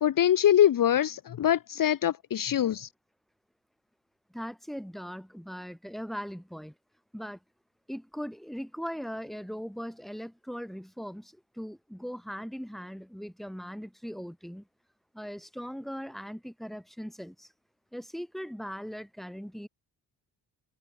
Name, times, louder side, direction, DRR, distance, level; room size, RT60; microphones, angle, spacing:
voice 1, 0.0-2.9, left 10 dB, 55° left, 1.1 m, -23 dB
voice 2, 4.3-6.7 7.1-7.4 7.9-14.7 15.1-17.5 17.9-19.7, equal, ahead, 7.3 m, -39 dB
open air
cardioid pair, 125°, 40 cm